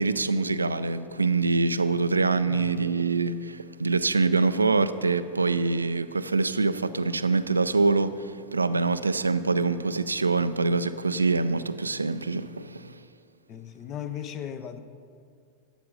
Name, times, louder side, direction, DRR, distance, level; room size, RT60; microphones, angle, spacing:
voice 1, 0.0-13.0, right 3 dB, 80° right, 0.3 m, -25 dB
voice 2, 13.5-14.8, left 9 dB, 35° left, 0.6 m, -37 dB
13.0 x 8.5 x 3.8 m
figure-of-eight pair, 90°, 0 cm